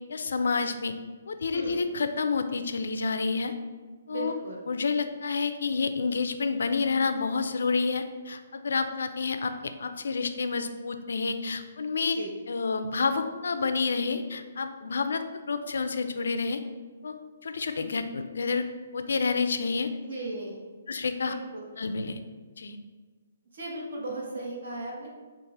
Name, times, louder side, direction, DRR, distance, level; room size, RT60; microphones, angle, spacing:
voice 1, 0.1-0.9 1.3-3.5 4.1-4.3 4.7-9.5 9.8-12.2 12.5-16.6 17.0-17.1 17.4-18.7 18.9-19.9 20.9-21.3 21.8-22.2 22.6-22.8, left 4 dB, 80° left, 9 dB, 0.4 m, -29 dB
voice 2, 4.1-4.6 12.1-12.3 20.1-20.6 21.2-21.6 23.5-25.1, right 2 dB, 60° right, -3 dB, 1.3 m, -36 dB
5.4 x 2.4 x 3.9 m, 1.4 s
hypercardioid pair, 175°, 0 cm